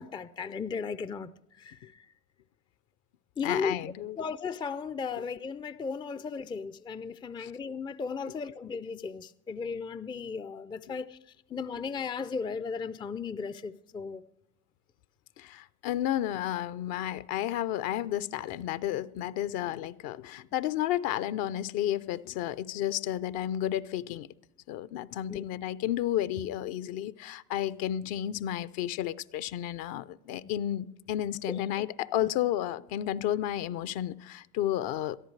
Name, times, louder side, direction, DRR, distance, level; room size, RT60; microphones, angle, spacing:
voice 1, 0.0-2.1 3.4-11.2 11.5-14.2 25.3-25.4 30.4-30.5 31.5-31.6 32.2-32.3, left 5 dB, 10° left, 0.4 m, -36 dB
voice 2, 3.4-4.2 7.4-7.5 15.4-24.3 24.7-35.3, left 12 dB, 55° left, 0.8 m, -32 dB
22.5 x 14.0 x 3.3 m
hypercardioid pair, 85°, 42 cm